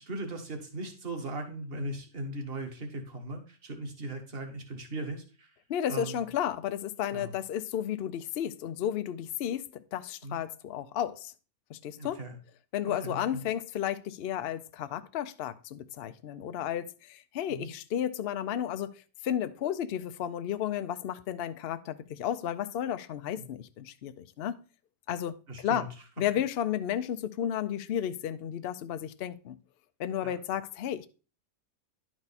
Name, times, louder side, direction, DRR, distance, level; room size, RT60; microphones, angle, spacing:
voice 1, 0.0-5.5 5.9-6.2 7.1-7.3 10.2-10.4 12.0-12.4 12.9-13.4 17.5-17.7 23.3-23.5 25.5-25.9 30.2-30.4, right 2 dB, 40° right, 1.6 m, -38 dB
voice 2, 5.7-11.3 11.7-12.2 12.7-18.9 19.2-24.6 25.1-25.9 26.2-29.6 30.0-31.1, left 10 dB, 70° left, 0.5 m, -33 dB
10.5 x 4.7 x 4.1 m
omnidirectional pair, 1.6 m